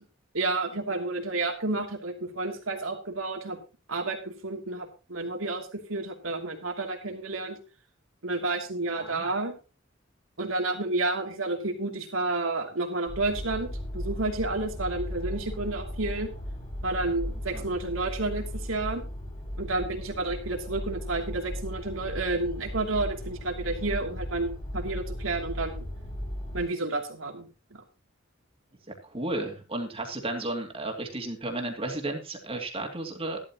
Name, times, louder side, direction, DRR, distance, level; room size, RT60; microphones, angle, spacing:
voice 1, 0.3-3.6 3.9-7.6 8.2-9.5 10.4-16.3 16.8-19.0 19.6-25.9 26.5-27.8, right 2 dB, 90° right, 2 dB, 2.9 m, -30 dB
voice 2, 9.0-9.3 17.5-17.7 28.9-33.4, right 2 dB, 30° right, 2 dB, 2.5 m, -33 dB
sound 1, 13.1-26.6, equal, 35° left, 4.6 m, -36 dB
14.5 x 12.0 x 3.0 m, 0.32 s
head